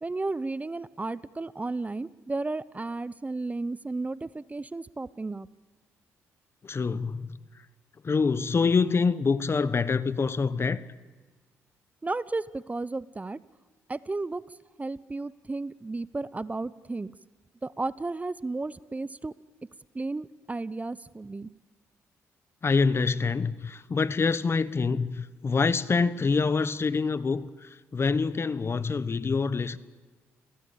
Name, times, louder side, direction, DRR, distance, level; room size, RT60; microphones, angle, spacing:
voice 1, 0.0-5.5 12.0-13.4 13.9-14.4 14.8-17.1 17.6-19.3 19.9-21.5, right 3 dB, 20° right, 0.7 m, -33 dB
voice 2, 6.6-7.4 8.0-10.8 22.6-29.8, left 4 dB, 40° left, 1.1 m, -26 dB
28.0 x 17.5 x 8.6 m
supercardioid pair, 55°, 7 cm